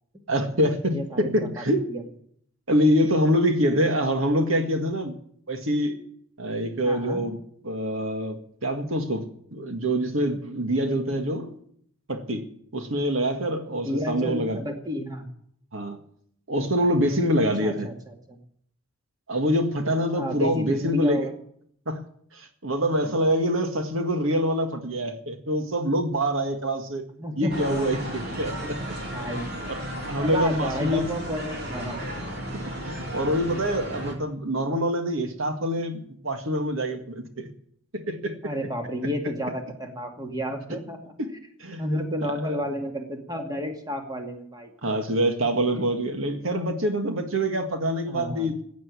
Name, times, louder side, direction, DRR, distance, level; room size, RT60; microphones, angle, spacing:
voice 1, 0.3-1.9 2.7-5.1 5.5-6.0 6.4-7.4 7.6-11.6 12.1-12.5 12.7-14.6 15.7-16.0 16.5-17.9 19.3-21.3 21.9-22.0 22.3-27.1 27.4-28.8 29.3-29.4 29.7-29.8 30.1-31.1 32.7-37.5 37.9-38.5 41.2-41.3 41.6-41.8 42.4-42.6 44.8-48.6, equal, 75° right, 1.9 m, -25 dB
voice 2, 0.9-2.0 6.8-7.2 13.7-15.3 17.6-18.4 20.1-21.3 27.2-27.7 29.1-29.7 30.2-32.0 38.4-41.0 41.8-45.1 45.7-45.8 46.9-47.0 48.1-48.5, equal, 20° right, 2.2 m, -31 dB
sound 1, 27.5-34.1, equal, 50° right, 3.6 m, -34 dB
16.0 x 9.4 x 8.3 m
head